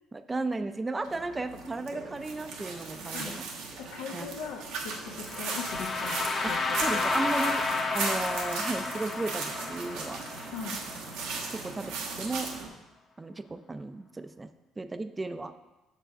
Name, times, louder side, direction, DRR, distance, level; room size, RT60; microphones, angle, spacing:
voice 1, 0.1-3.4 4.1-4.3 6.4-7.7 7.9-10.2 11.5-12.5 13.2-14.5 14.8-15.5, right 2 dB, 20° right, 10 dB, 0.4 m, -34 dB
sound 1, 1.0-12.7, right 4 dB, 85° right, 1.1 m, -37 dB
voice 2, 3.8-7.4 10.5-10.8, left 7 dB, 90° left, 1 dB, 0.7 m, -40 dB
sound 2, 5.2-11.2, left 3 dB, 35° left, 0.8 m, -31 dB
6.8 x 4.6 x 5.1 m, 1.0 s
cardioid pair, 95°, 0 cm